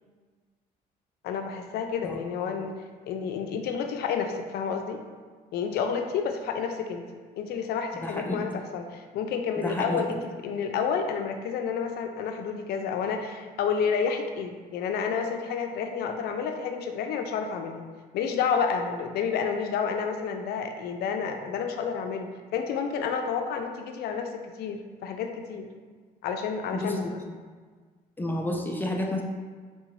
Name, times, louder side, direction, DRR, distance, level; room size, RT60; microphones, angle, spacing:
voice 1, 1.2-2.7 3.1-5.0 5.5-17.8 18.1-25.7 26.2-27.2, left 6 dB, 70° left, 5 dB, 0.4 m, -30 dB
voice 2, 8.0-8.5 9.6-9.8 26.7-27.0 28.2-29.2, left 1 dB, 10° left, 1 dB, 0.4 m, -30 dB
3.6 x 2.6 x 3.1 m, 1.5 s
cardioid pair, 110°, 17 cm